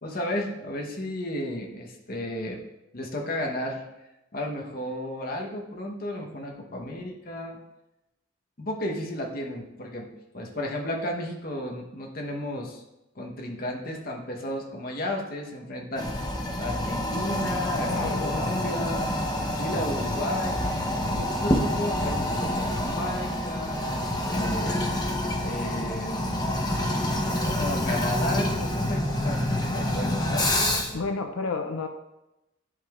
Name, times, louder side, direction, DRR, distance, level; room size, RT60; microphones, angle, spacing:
voice 1, 0.0-2.6 2.9-3.8 4.3-7.6 8.6-10.1 10.3-12.8 13.1-20.6 21.1-24.8 25.4-26.4 27.2-31.1, left 1 dB, 45° left, 1 dB, 0.9 m, -33 dB
Toilet flush, 16.0-31.0, left 1 dB, 20° left, 0.7 m, -27 dB
voice 2, 17.9-18.4 30.9-31.9, left 4 dB, 90° left, 5 dB, 0.5 m, -30 dB
11.0 x 5.2 x 2.4 m, 0.93 s
head